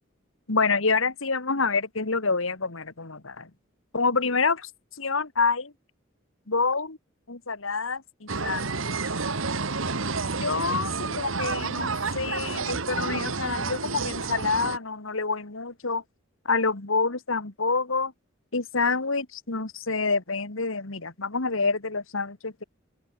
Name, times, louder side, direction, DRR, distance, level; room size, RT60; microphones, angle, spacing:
voice 1, 0.5-3.5 3.9-4.7 5.0-5.7 6.5-7.0 7.3-8.8 10.4-16.0 16.5-18.1 18.5-22.6, left 4 dB, 85° left, 2.1 m, -27 dB
sound 1, 8.3-14.8, right 4 dB, 85° right, 1.7 m, -30 dB
open air
head